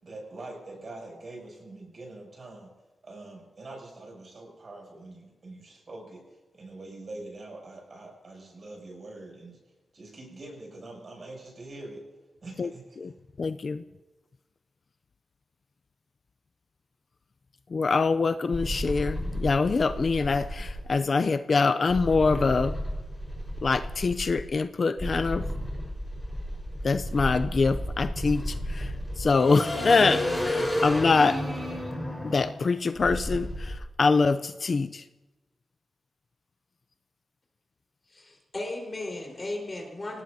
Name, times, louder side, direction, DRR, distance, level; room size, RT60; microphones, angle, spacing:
voice 1, 0.0-2.7 3.0-9.6 9.9-12.0 12.4-13.0, right 2 dB, 45° right, -1 dB, 7.1 m, -44 dB
voice 2, 13.4-13.8 17.7-22.8 23.6-25.5 26.8-31.4 32.2-35.0, left 4 dB, 45° left, 10 dB, 0.5 m, -24 dB
sound 1, 18.5-20.8 21.9-24.4 25.0-33.8, equal, 5° left, 4.6 m, -32 dB
voice 3, 38.1-40.2, left 2 dB, 25° left, -1 dB, 4.4 m, -35 dB
28.0 x 18.5 x 2.8 m, 1.2 s
wide cardioid pair, 140°, 0 cm